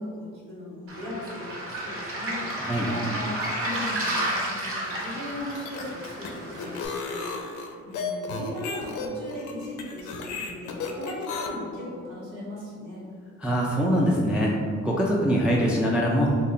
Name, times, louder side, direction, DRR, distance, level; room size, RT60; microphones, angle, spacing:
voice 1, 0.0-2.4 2.8-3.3 3.6-7.2 7.8-13.0, left 1 dB, 80° right, -7 dB, 1.3 m, -37 dB
Waves surf, 0.9-6.9, right 1 dB, 50° right, 0.9 m, -32 dB
sound 1, 5.4-11.5, left 4 dB, 80° left, 0.5 m, -34 dB
voice 2, 13.4-14.5 14.8-16.4, equal, 5° right, -4 dB, 0.3 m, -23 dB
2.6 x 2.5 x 4.0 m, 2.1 s
cardioid pair, 90°, 30 cm